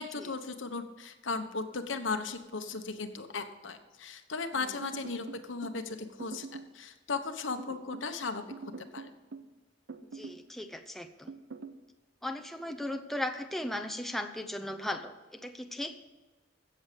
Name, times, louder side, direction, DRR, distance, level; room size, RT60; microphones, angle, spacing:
voice 1, 0.0-8.4 8.8-9.1, left 4 dB, 90° left, 7 dB, 1.2 m, -36 dB
sound 1, 4.8-5.8 6.2-6.8 7.6-8.1 8.5-9.5 9.9-10.5 11.3-11.8, right 4 dB, 80° right, 0.7 m, -44 dB
voice 2, 10.0-11.3 12.2-16.1, left 1 dB, ahead, 4 dB, 0.7 m, -37 dB
16.0 x 7.2 x 5.2 m, 1.2 s
head